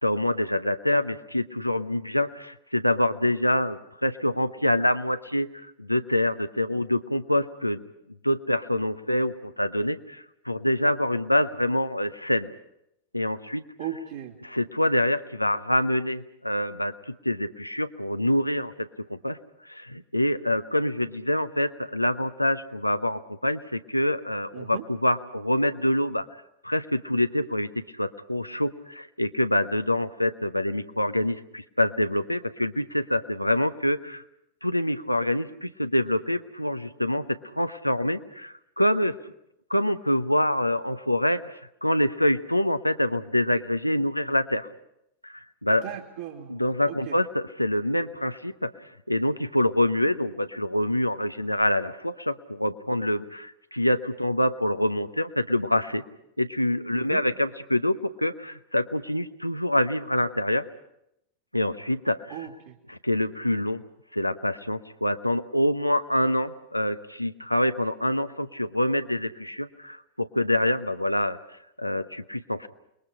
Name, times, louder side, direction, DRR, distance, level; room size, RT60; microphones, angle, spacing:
voice 1, 0.0-7.8 8.2-12.5 13.1-13.6 14.4-19.4 19.7-26.2 26.6-27.7 28.0-34.2 34.6-39.2 39.7-44.7 45.2-45.8 46.5-48.7 49.1-56.0 56.4-60.7 61.5-62.3 62.9-63.8 64.1-71.4 71.8-72.7, left 1 dB, 90° left, 11 dB, 0.9 m, -26 dB
voice 2, 13.8-14.4 24.5-24.8 45.8-46.6 46.9-47.2 56.9-57.2 62.3-62.8, right 9 dB, 60° right, -4 dB, 2.7 m, -37 dB
28.5 x 21.5 x 5.7 m, 0.81 s
figure-of-eight pair, 90°, 0 cm